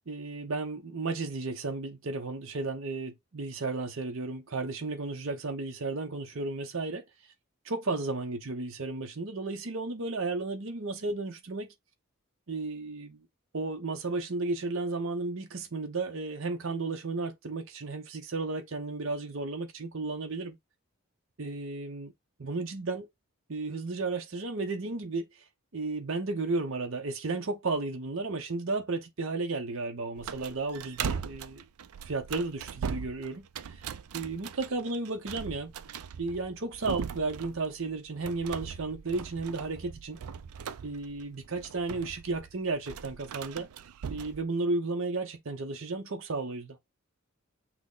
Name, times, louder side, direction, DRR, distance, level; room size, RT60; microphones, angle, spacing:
voice 1, 0.1-7.0 7.6-11.7 12.5-13.2 13.5-20.6 21.4-22.1 22.4-23.0 23.5-25.4 25.7-31.6 32.0-35.7 36.2-40.2 40.8-43.7 44.1-46.8, right 3 dB, 60° right, 0.7 m, -33 dB
sound 1, 30.2-44.4, right 7 dB, 85° right, 0.4 m, -40 dB
6.0 x 2.2 x 3.7 m
head